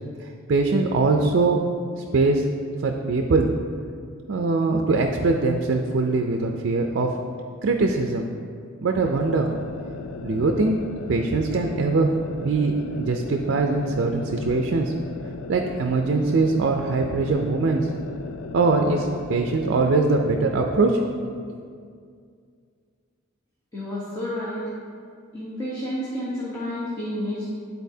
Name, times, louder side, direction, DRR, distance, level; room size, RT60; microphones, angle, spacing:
voice 1, 0.2-1.6 2.0-2.4 2.8-3.5 4.3-7.1 7.6-8.3 8.8-9.5 10.2-10.8 11.1-14.9 15.5-17.9 18.5-21.0, right 3 dB, 60° right, 3 dB, 0.4 m, -22 dB
sound 1, 8.9-20.0, left 4 dB, 75° left, 0.4 m, -37 dB
voice 2, 23.7-24.6 25.3-27.4, left 1 dB, 15° left, -8 dB, 1.0 m, -30 dB
11.0 x 4.0 x 2.7 m, 2.2 s
head